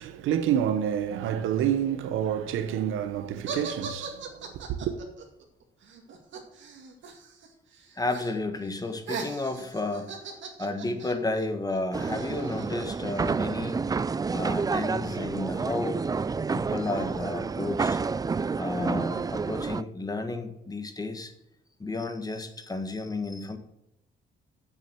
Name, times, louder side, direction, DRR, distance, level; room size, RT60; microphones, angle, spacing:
voice 1, 0.0-5.0, right 9 dB, 90° right, 0.9 m, -28 dB
sound 1, 3.4-7.5 7.7-8.3 8.6-13.3, right 5 dB, 70° right, 2.0 m, -40 dB
voice 2, 8.0-10.1 10.6-13.8 14.3-16.0 16.5-18.0 18.6-21.3 21.8-23.6, left 2 dB, 20° left, 1.4 m, -32 dB
sound 2, 11.9-19.8, right 4 dB, 20° right, 0.3 m, -29 dB
7.6 x 7.3 x 6.8 m
cardioid pair, 90°, 20 cm